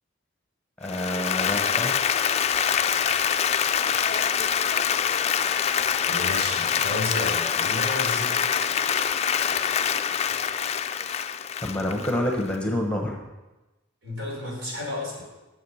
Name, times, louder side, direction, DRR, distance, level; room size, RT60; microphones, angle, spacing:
Applause, 0.8-12.5, left 8 dB, 35° left, 0.3 m, -25 dB
voice 1, 0.8-1.9 11.6-13.2, left 1 dB, 5° left, 1 dB, 1.2 m, -27 dB
voice 2, 6.1-8.4 14.0-15.2, left 1 dB, 70° right, -3 dB, 4.5 m, -32 dB
10.5 x 7.2 x 5.7 m, 1.1 s
head